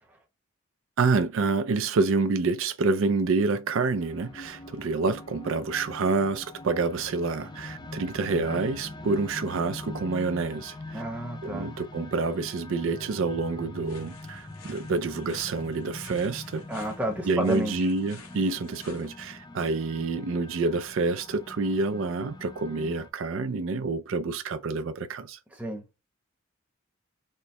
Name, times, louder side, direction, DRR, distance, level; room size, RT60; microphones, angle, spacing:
voice 1, 1.0-11.0 11.4-16.6 17.3-25.4, right 3 dB, 70° right, 0.4 m, -28 dB
sound 1, 4.0-23.1, left 2 dB, 20° left, 0.4 m, -43 dB
voice 2, 10.9-11.8 16.7-17.9 25.5-25.8, right 1 dB, 5° right, 0.9 m, -31 dB
sound 2, 13.8-19.1, left 5 dB, 90° left, 1.1 m, -52 dB
4.2 x 2.1 x 3.2 m
head